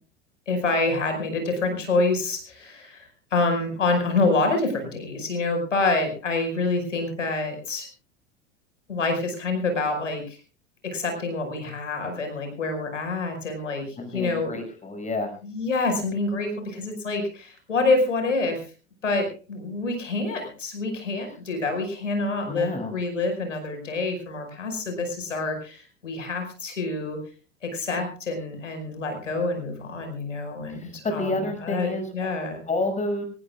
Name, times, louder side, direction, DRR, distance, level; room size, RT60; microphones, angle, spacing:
voice 1, 0.5-7.9 8.9-10.4 10.8-14.5 15.4-18.7 19.0-27.2 27.6-32.6, left 3 dB, 85° left, 5 dB, 5.3 m, -27 dB
voice 2, 14.0-15.3 22.5-22.9 30.7-30.9 31.2-32.1 32.7-33.2, left 2 dB, 20° left, 5 dB, 6.4 m, -29 dB
24.5 x 19.0 x 2.3 m, 0.37 s
figure-of-eight pair, 85°, 36 cm